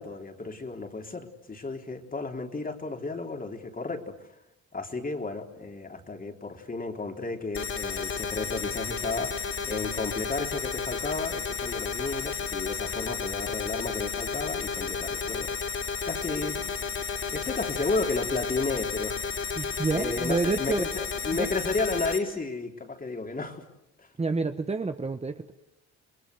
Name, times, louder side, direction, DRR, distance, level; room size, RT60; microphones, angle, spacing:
voice 1, 0.0-4.2 4.7-15.5 16.1-16.7 17.3-19.2 19.6-23.7 24.0-24.1, left 3 dB, 30° left, 4 dB, 3.7 m, -33 dB
sound 1, 7.5-22.2, left 5 dB, 45° left, 5.4 m, -32 dB
voice 2, 19.6-20.9 24.2-25.5, right 3 dB, 20° right, 7 dB, 1.3 m, -28 dB
30.0 x 21.5 x 8.0 m, 0.84 s
cardioid pair, 90°, 30 cm